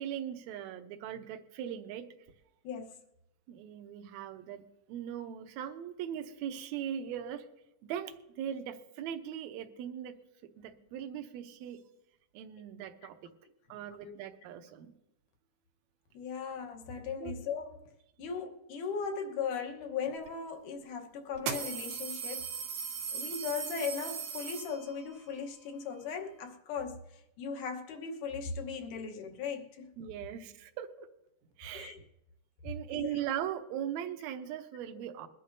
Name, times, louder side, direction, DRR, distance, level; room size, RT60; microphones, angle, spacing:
voice 1, 0.0-2.1 3.5-4.6 4.9-7.5 7.8-10.1 10.6-11.8 12.3-13.3 13.7-14.9 17.2-17.3 30.0-31.1 31.6-31.9 32.6-35.3, right 10 dB, 70° right, 1.9 m, -39 dB
voice 2, 2.6-3.0 14.0-14.1 16.1-17.8 18.2-22.5 23.1-27.0 27.4-29.9 31.7-32.0 32.9-33.1, left 6 dB, 75° left, 2.7 m, -38 dB
sound 1, 20.3-20.4 21.3-25.1, right 7 dB, 90° right, 3.0 m, -38 dB
22.0 x 11.0 x 2.7 m
omnidirectional pair, 3.7 m